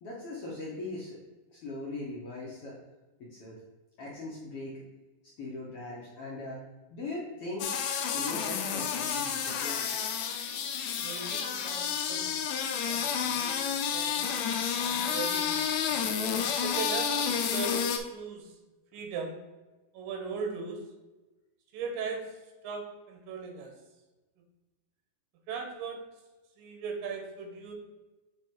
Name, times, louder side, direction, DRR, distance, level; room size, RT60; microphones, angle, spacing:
voice 1, 0.0-1.2 1.5-2.8 3.2-3.6 4.0-4.8 5.4-6.6 6.9-7.7 8.1-9.8, left 2 dB, 60° left, -5 dB, 1.6 m, -39 dB
sound 1, 7.6-18.0, left 7 dB, 90° left, 1.5 m, -30 dB
voice 2, 11.0-12.5 12.9-15.6 16.6-18.5 18.9-19.4 19.9-20.8 21.7-22.3 22.6-23.7 25.5-26.0 26.6-27.7, right 5 dB, 85° right, 3 dB, 2.7 m, -39 dB
7.3 x 3.5 x 4.5 m, 1.1 s
omnidirectional pair, 4.0 m